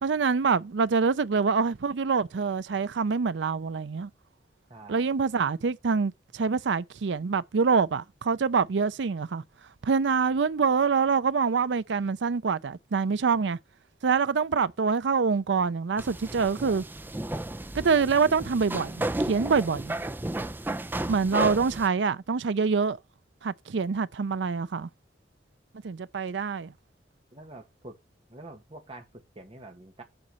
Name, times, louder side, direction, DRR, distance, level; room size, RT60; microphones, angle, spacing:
voice 1, 0.0-4.1 4.9-9.4 9.8-13.6 14.0-16.8 17.7-19.9 21.1-23.0 23.4-24.9 25.8-26.7, right 5 dB, 90° right, 0.5 m, -25 dB
voice 2, 4.7-5.2 27.3-28.0 28.3-30.0, right 2 dB, 30° right, 1.6 m, -46 dB
sound 1, 16.0-21.9, right 1 dB, 10° right, 0.4 m, -33 dB
7.8 x 4.2 x 6.9 m
head